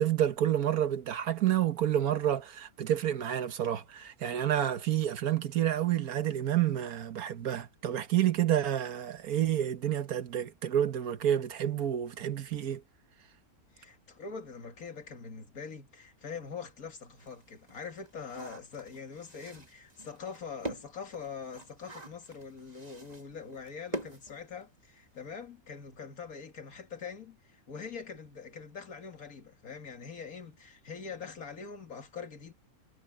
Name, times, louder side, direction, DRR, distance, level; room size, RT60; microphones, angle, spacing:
voice 1, 0.0-12.8, right 11 dB, 80° right, 1.6 m, -29 dB
voice 2, 13.7-32.5, left 5 dB, 75° left, 2.5 m, -43 dB
sound 1, 16.4-16.5 17.0-25.0 25.3-25.4 25.7-25.9, right 1 dB, 25° right, 2.1 m, -45 dB
omnidirectional pair, 1.5 m